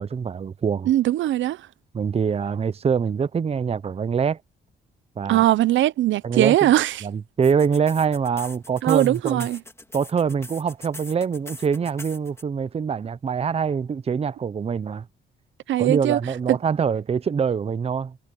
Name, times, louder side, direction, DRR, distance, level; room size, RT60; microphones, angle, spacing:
voice 1, 0.0-0.9 1.9-4.4 5.2-5.4 6.2-6.6 7.0-9.5 9.9-15.1 15.8-18.2, right 6 dB, 30° right, 0.6 m, -24 dB
voice 2, 0.9-1.7 5.3-7.0 8.8-9.6 15.7-16.2 16.5-16.6, right 14 dB, 75° right, 0.7 m, -20 dB
sound 1, 7.4-12.4, left 2 dB, 15° left, 2.8 m, -41 dB
cardioid pair, 90°, 20 cm